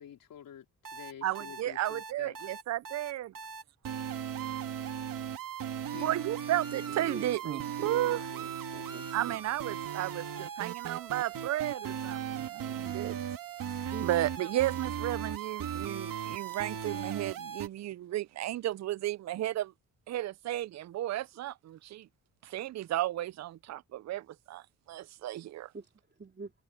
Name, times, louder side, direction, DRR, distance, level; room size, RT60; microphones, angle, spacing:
voice 1, 0.0-2.4 5.9-6.2, left 9 dB, 90° left, 4.1 m, -49 dB
sound 1, 0.8-17.7, right 8 dB, 85° right, 2.8 m, -37 dB
voice 2, 1.2-3.3 6.0-8.2 9.1-13.2 13.8-19.7 20.1-22.1 22.4-25.7, right 14 dB, 55° right, 0.4 m, -34 dB
voice 3, 6.9-9.4 13.9-14.1 25.7-25.9 26.2-26.5, right 3 dB, 30° right, 3.5 m, -45 dB
cardioid pair, 95°, 33 cm